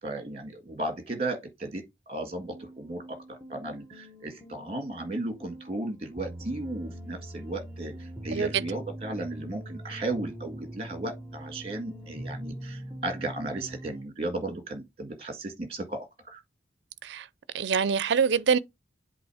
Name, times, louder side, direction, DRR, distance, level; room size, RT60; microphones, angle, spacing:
voice 1, 0.0-16.4, right 2 dB, 30° right, 1.6 m, -35 dB
sound 1, 2.4-14.0, right 1 dB, 10° right, 1.0 m, -42 dB
voice 2, 8.3-8.6 17.0-17.3 17.5-18.6, right 6 dB, 70° right, 0.4 m, -25 dB
7.8 x 2.9 x 4.8 m
head